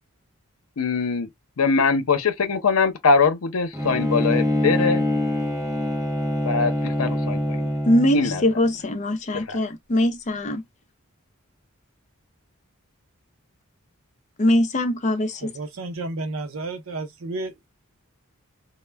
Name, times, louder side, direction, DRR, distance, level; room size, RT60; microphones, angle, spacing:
voice 1, 0.8-1.3 1.6-5.0 6.5-7.7 8.1-8.4 9.5-9.6, left 4 dB, 85° left, 0.7 m, -22 dB
Bowed string instrument, 3.7-8.4, left 1 dB, 15° right, 0.6 m, -24 dB
voice 2, 7.9-10.6 14.4-15.5, left 1 dB, 35° left, 0.5 m, -22 dB
voice 3, 15.4-17.7, right 2 dB, 65° right, 0.6 m, -32 dB
2.2 x 2.1 x 3.3 m
head